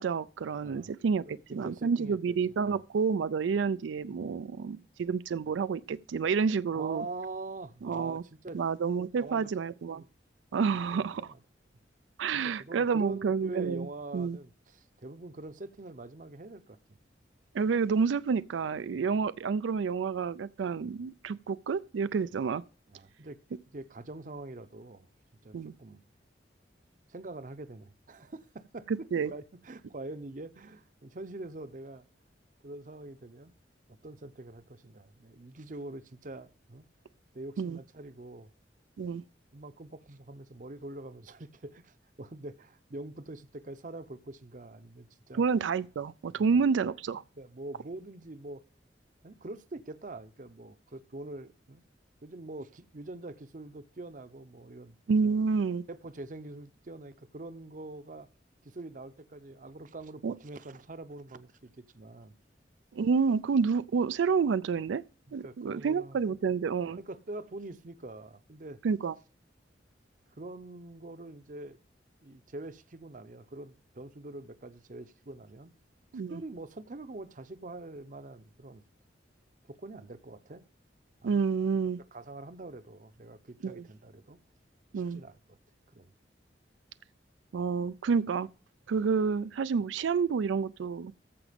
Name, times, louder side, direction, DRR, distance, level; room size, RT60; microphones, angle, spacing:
voice 1, 0.0-7.1 7.8-8.2 8.5-10.0 10.5-11.3 12.2-13.9 14.1-14.4 17.5-22.6 25.5-25.7 28.9-29.3 37.6-37.8 39.0-39.2 45.3-47.2 55.1-55.8 60.2-60.3 62.9-65.0 65.3-67.0 68.8-69.1 76.1-76.4 81.2-82.0 83.6-83.8 84.9-85.2 87.5-88.5 88.9-91.1, right 5 dB, 90° right, 0.4 m, -29 dB
voice 2, 1.2-2.2 2.7-2.8 6.7-8.6 9.2-10.1 10.6-11.4 12.3-16.8 18.9-19.1 20.8-21.0 22.9-23.4 23.7-25.1 25.4-26.0 27.1-32.1 32.6-33.5 33.9-36.9 37.3-38.5 39.5-45.4 46.4-46.6 47.4-48.6 49.2-51.8 52.2-55.4 55.9-58.3 58.6-62.3 65.3-66.2 66.9-68.8 70.4-71.8 72.2-75.7 76.1-78.8 79.6-80.6 81.2-81.4 82.1-84.4 85.1-85.6 85.9-86.1 88.9-89.0, right 2 dB, 45° right, 0.7 m, -44 dB
14.5 x 4.9 x 5.1 m
head